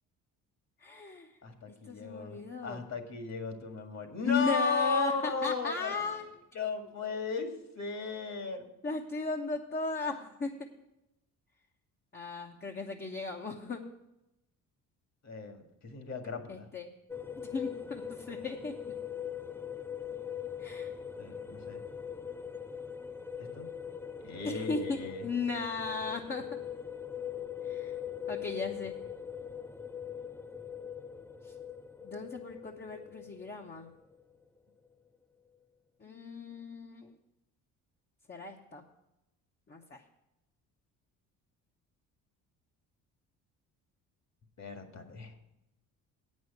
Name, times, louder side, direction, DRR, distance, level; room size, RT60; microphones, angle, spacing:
voice 1, 0.8-1.3 1.9-2.8 4.2-6.2 8.8-10.5 12.1-13.8 16.5-16.9 17.4-18.7 20.6-20.9 24.4-26.5 27.6-27.9 28.3-29.0 31.4-31.5 32.0-33.9 36.0-37.1 38.3-38.8 39.7-40.0, left 4 dB, 25° left, 1 dB, 1.0 m, -36 dB
voice 2, 1.4-6.2 6.5-7.5 7.8-8.7 15.2-16.7 21.2-21.8 23.4-23.7 24.2-25.2 44.6-45.3, left 4 dB, 45° left, 5 dB, 1.9 m, -35 dB
sound 1, 17.1-34.3, left 8 dB, 5° left, 0.5 m, -41 dB
8.6 x 6.4 x 8.3 m, 0.91 s
supercardioid pair, 80°, 37 cm